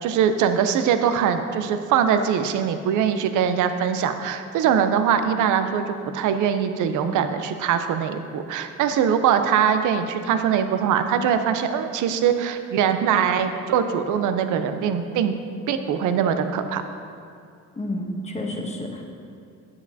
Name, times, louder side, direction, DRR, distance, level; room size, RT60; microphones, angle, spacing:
voice 1, 0.0-15.4 15.7-16.8, right 8 dB, 85° right, 8 dB, 0.6 m, -22 dB
voice 2, 17.8-19.0, left 1 dB, 20° left, 2 dB, 1.0 m, -30 dB
9.7 x 7.2 x 2.7 m, 2.4 s
cardioid pair, 90°, 30 cm